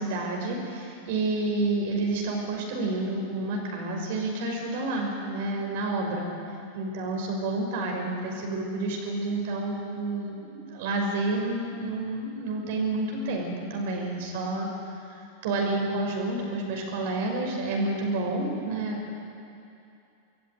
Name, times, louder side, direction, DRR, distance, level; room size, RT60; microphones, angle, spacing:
voice 1, 0.0-6.3 6.7-14.7 15.4-19.1, right 2 dB, 50° right, 1 dB, 5.7 m, -29 dB
25.5 x 20.5 x 9.4 m, 2.7 s
figure-of-eight pair, 90°, 0 cm